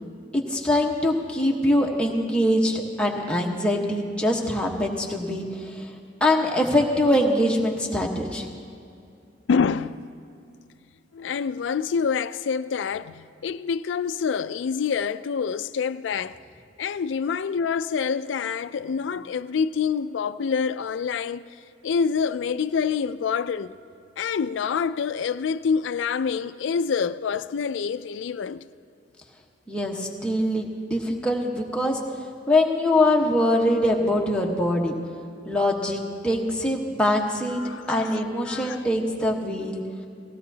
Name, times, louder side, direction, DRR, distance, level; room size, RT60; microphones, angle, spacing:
voice 1, 0.3-5.9 6.2-8.5 29.7-32.0 32.5-34.9 35.4-37.6 37.9-39.8, left 1 dB, 5° left, 1.1 m, -23 dB
voice 2, 9.5-10.1 11.1-16.4 16.8-21.4 21.8-23.8 24.2-28.7 37.5-38.2 38.4-38.8, left 6 dB, 85° left, 0.4 m, -26 dB
18.5 x 16.0 x 2.8 m
head